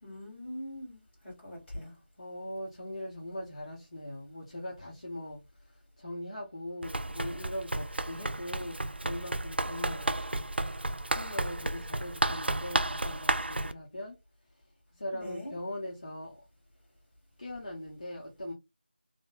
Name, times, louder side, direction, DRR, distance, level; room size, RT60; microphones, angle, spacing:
voice 1, 0.0-1.9 15.1-15.5, left 1 dB, 10° left, 2.2 m, -42 dB
voice 2, 1.8-10.1 11.1-14.2 14.9-16.4 17.4-18.5, left 1 dB, 35° left, 1.0 m, -41 dB
Run, 6.8-13.7, right 2 dB, 70° right, 0.5 m, -32 dB
3.7 x 2.7 x 3.7 m
figure-of-eight pair, 170°, 6 cm